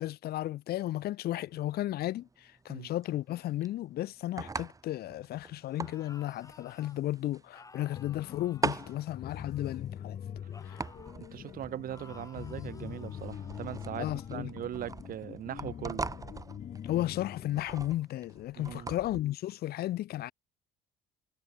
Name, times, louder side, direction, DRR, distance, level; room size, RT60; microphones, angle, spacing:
voice 1, 0.0-10.2 10.6-10.8 14.0-14.5 16.8-20.3, left 14 dB, 65° left, 1.1 m, -34 dB
sound 1, 1.5-19.2, right 3 dB, 20° right, 2.3 m, -42 dB
sound 2, 5.6-7.0 7.5-9.8 10.5-11.2 11.9-14.4, left 3 dB, 20° left, 4.5 m, -56 dB
sound 3, 7.9-17.6, left 9 dB, 45° left, 1.4 m, -43 dB
voice 2, 11.2-16.1 18.6-19.0, right 11 dB, 60° right, 1.9 m, -40 dB
cardioid pair, 110°, 17 cm